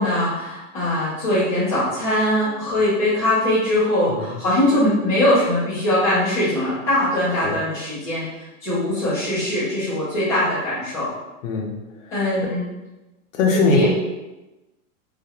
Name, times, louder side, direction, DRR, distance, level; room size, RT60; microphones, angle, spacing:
voice 1, 0.0-8.3 8.6-11.1 12.1-12.6 13.7-13.9, left 1 dB, 10° left, -13 dB, 0.4 m, -21 dB
voice 2, 11.4-11.7 12.4-12.5 13.3-13.9, left 4 dB, 65° left, 1 dB, 0.7 m, -20 dB
2.4 x 2.1 x 2.8 m, 1.0 s
supercardioid pair, 170°, 42 cm